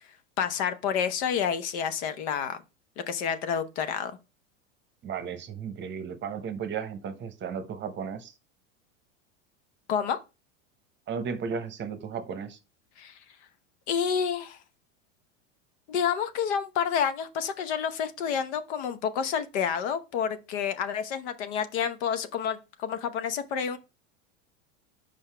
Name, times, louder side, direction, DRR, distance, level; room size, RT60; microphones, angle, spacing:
voice 1, 0.4-2.6 3.0-4.1 9.9-10.2 13.0-13.2 13.9-14.6 15.9-23.8, left 7 dB, 65° left, 0.9 m, -29 dB
voice 2, 5.0-8.3 11.1-12.6, right 6 dB, 30° right, 0.9 m, -34 dB
5.5 x 5.2 x 3.4 m
hypercardioid pair, 110°, 37 cm